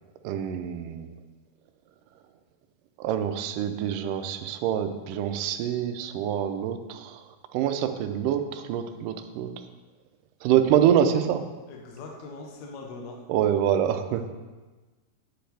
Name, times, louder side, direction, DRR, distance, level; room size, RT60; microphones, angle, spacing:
voice 1, 0.2-1.1 3.0-7.2 7.5-9.5 10.4-11.4 13.3-14.3, right 9 dB, 85° right, 7 dB, 1.9 m, -25 dB
voice 2, 11.7-13.2 14.1-14.2, left 3 dB, 65° left, 1 dB, 1.9 m, -41 dB
10.5 x 8.6 x 3.4 m, 1.2 s
omnidirectional pair, 4.6 m